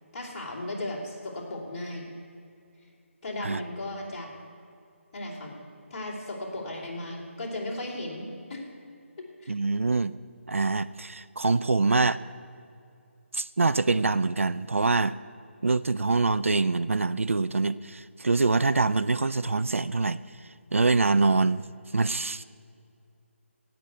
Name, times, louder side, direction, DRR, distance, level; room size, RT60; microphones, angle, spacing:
voice 1, 0.1-2.1 3.2-4.3 5.1-5.5 5.9-8.2 8.5-8.6 9.2-9.5 11.7-11.8, left 1 dB, 30° left, -4 dB, 2.9 m, -36 dB
voice 2, 9.5-10.2 10.5-12.2 13.3-15.2 15.6-20.2 20.7-21.6 21.9-22.4, right 3 dB, 70° right, 15 dB, 0.4 m, -24 dB
16.5 x 6.1 x 9.2 m, 2.4 s
figure-of-eight pair, 155°, 7 cm